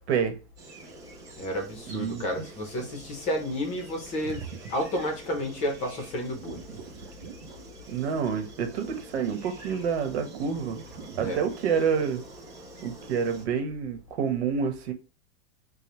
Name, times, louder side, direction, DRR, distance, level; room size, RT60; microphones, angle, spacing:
sound 1, 0.6-13.5, right 2 dB, 10° right, 0.4 m, -48 dB
voice 1, 1.4-6.7 11.2-11.4, equal, 20° left, 0.7 m, -31 dB
voice 2, 1.9-2.5 7.9-10.8 11.2-12.2 12.8-14.9, right 6 dB, 80° right, 1.1 m, -28 dB
sound 2, 4.0-5.1 6.4-8.0 9.8-11.7, right 6 dB, 55° right, 0.8 m, -44 dB
5.0 x 2.2 x 3.0 m
supercardioid pair, 175°, 33 cm